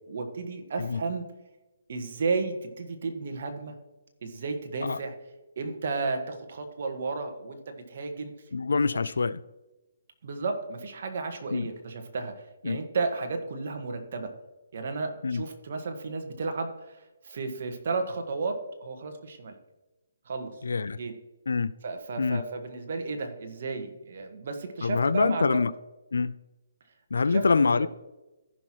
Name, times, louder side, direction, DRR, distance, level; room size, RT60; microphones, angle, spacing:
voice 1, 0.1-1.2 1.9-3.8 4.2-5.1 5.6-8.3 8.7-9.0 10.2-14.3 14.7-19.6 20.3-20.5 21.0-21.1 21.8-25.6 27.3-27.9, right 4 dB, 55° right, 1.5 m, -33 dB
voice 2, 8.5-9.4 11.5-11.7 12.6-12.8 15.2-15.4 20.6-21.0 21.5-21.7 22.2-22.4 24.8-25.7 26.1-26.4 27.1-27.9, left 4 dB, 80° left, 0.4 m, -25 dB
14.5 x 6.1 x 3.0 m
hypercardioid pair, 150°, 0 cm